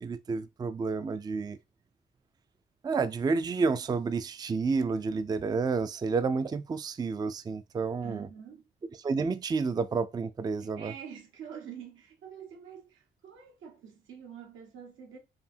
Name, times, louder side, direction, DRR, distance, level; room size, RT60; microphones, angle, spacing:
voice 1, 0.0-1.6 2.8-8.3 9.0-10.9, right 4 dB, 20° right, 0.3 m, -30 dB
voice 2, 8.0-8.6 10.6-15.2, right 7 dB, 80° right, 1.3 m, -46 dB
4.8 x 2.7 x 2.7 m
cardioid pair, 90°, 20 cm